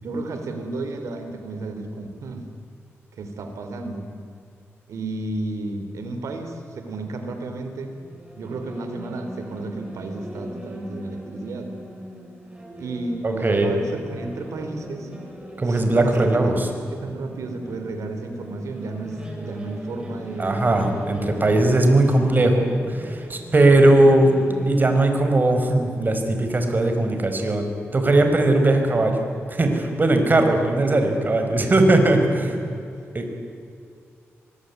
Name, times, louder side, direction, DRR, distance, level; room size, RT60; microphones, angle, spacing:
voice 1, 0.0-2.5 3.1-4.1 4.9-7.9 8.4-11.7 12.8-15.1 15.6-20.7 32.4-32.7, right 2 dB, 85° right, 7 dB, 3.8 m, -32 dB
sound 1, 7.9-25.0, equal, 20° right, 7.2 m, -39 dB
voice 2, 13.2-13.7 15.6-16.7 20.4-32.5 33.1-33.4, right 2 dB, 35° right, 5 dB, 5.0 m, -19 dB
24.5 x 20.5 x 9.6 m, 2.4 s
cardioid pair, 75°, 5 cm